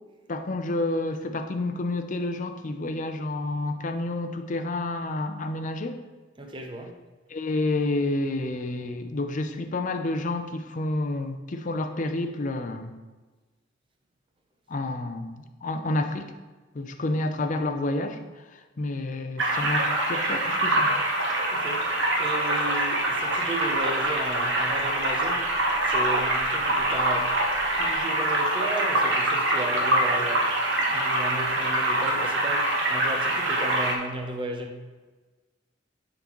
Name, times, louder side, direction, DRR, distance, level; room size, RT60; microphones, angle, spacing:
voice 1, 0.3-6.0 7.3-13.0 14.7-16.3 16.7-21.0, left 2 dB, 45° left, 0.5 m, -29 dB
voice 2, 6.4-7.0 21.5-21.9 22.2-25.6 25.8-27.4 27.8-34.9, right 1 dB, 25° right, 0.7 m, -35 dB
sound 1, 19.4-34.0, right 1 dB, 85° right, 1.1 m, -25 dB
sound 2, 23.1-28.0, left 3 dB, 15° left, 1.0 m, -42 dB
10.0 x 3.9 x 3.0 m
head